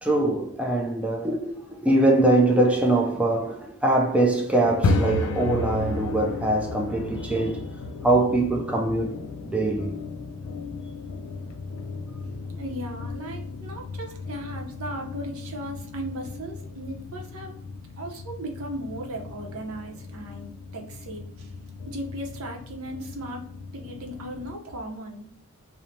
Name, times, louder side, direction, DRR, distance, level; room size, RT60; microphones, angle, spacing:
voice 1, 0.0-7.6 8.0-10.0, right 2 dB, 5° right, 0.3 m, -23 dB
sound 1, 4.6-24.5, left 3 dB, 75° left, 0.4 m, -34 dB
voice 2, 12.6-17.5 18.0-21.5 21.9-23.4 23.7-25.3, right 1 dB, 65° right, 0.6 m, -37 dB
3.1 x 2.0 x 2.6 m
head